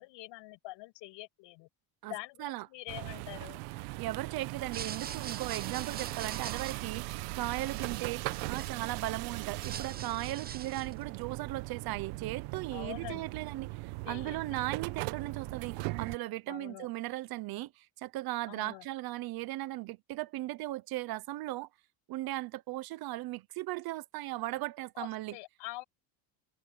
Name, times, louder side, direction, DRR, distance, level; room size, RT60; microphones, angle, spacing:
voice 1, 0.0-1.7 2.1-3.6 7.8-7.9 12.7-13.3 14.0-14.7 16.5-16.9 18.5-18.9 25.0-25.8, left 20 dB, 65° left, 7.2 m, -45 dB
voice 2, 2.0-2.7 4.0-21.7 22.1-25.4, right 17 dB, 50° right, 1.0 m, -37 dB
sound 1, 2.9-16.2, right 21 dB, 75° right, 1.4 m, -39 dB
sound 2, 4.6-9.0 9.4-11.0, right 8 dB, 20° right, 0.7 m, -44 dB
cardioid pair, 150°, 48 cm